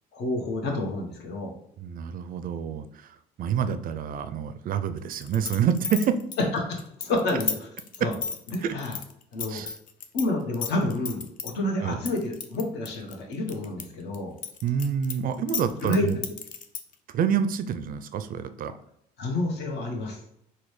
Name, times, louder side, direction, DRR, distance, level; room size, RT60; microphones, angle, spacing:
voice 1, 0.1-1.5 6.7-7.7 8.0-8.1 8.5-9.0 9.3-9.6 10.1-14.3 15.8-16.2 19.2-20.2, left 2 dB, 65° left, 1 dB, 1.0 m, -29 dB
voice 2, 1.8-6.2 8.0-8.1 8.6-8.7 9.5-9.8 11.8-12.0 14.6-16.2 17.1-18.7, right 8 dB, 50° right, 11 dB, 0.4 m, -27 dB
sound 1, 5.1-10.3 10.5-11.5 12.1-13.8 14.1-16.9, left 6 dB, 45° left, 0.5 m, -33 dB
3.9 x 2.2 x 3.2 m, 0.73 s
supercardioid pair, 70°, 19 cm